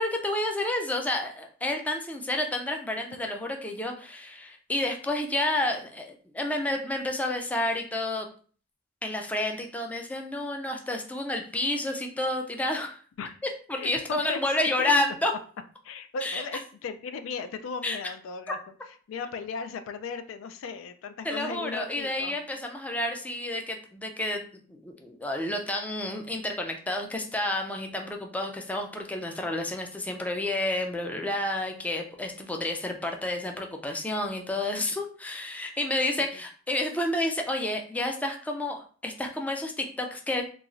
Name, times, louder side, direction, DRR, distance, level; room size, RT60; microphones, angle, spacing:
voice 1, 0.0-8.3 9.0-13.0 13.7-15.3 16.2-16.4 17.8-18.0 21.2-40.4, left 1 dB, 10° left, 3 dB, 0.3 m, -30 dB
voice 2, 13.8-14.4 14.8-14.9 15.8-18.6 19.1-22.4, left 5 dB, 85° left, 10 dB, 0.3 m, -36 dB
3.0 x 2.3 x 2.5 m, 0.42 s
head